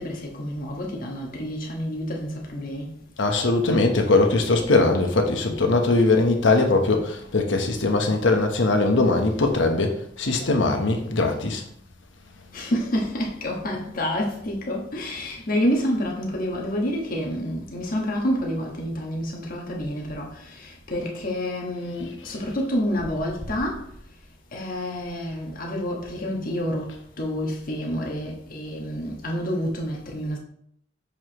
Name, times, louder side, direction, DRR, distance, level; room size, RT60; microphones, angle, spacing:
voice 1, 0.0-3.0 12.4-23.9 24.5-30.4, equal, 50° left, 1.3 m, -28 dB
voice 2, 3.2-11.6, left 2 dB, 75° left, 1.0 m, -21 dB
7.0 x 4.7 x 3.0 m
head